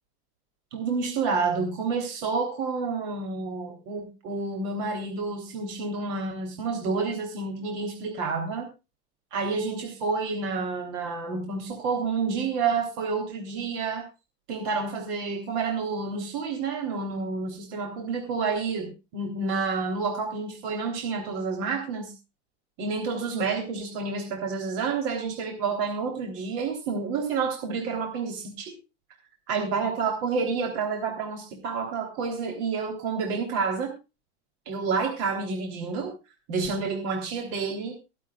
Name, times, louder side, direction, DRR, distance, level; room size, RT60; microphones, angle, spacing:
voice 1, 0.7-8.7 9.3-14.1 14.5-22.1 22.8-28.8 29.5-33.9 34.7-36.1 36.5-37.9, right 4 dB, 65° right, 3 dB, 3.6 m, -29 dB
24.5 x 8.2 x 2.4 m, 0.28 s
supercardioid pair, 135°, 35 cm